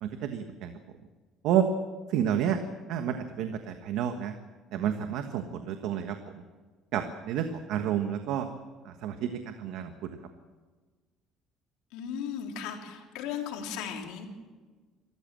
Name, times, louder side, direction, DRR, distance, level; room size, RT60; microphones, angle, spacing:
voice 1, 0.0-0.7 1.4-1.6 2.1-2.6 2.9-4.3 4.7-6.2 6.9-8.5 8.8-10.2, right 9 dB, 70° right, 7 dB, 1.4 m, -30 dB
voice 2, 11.9-14.3, left 8 dB, 90° left, 2 dB, 3.4 m, -36 dB
25.0 x 14.0 x 7.6 m, 1.4 s
cardioid pair, 155°, 0 cm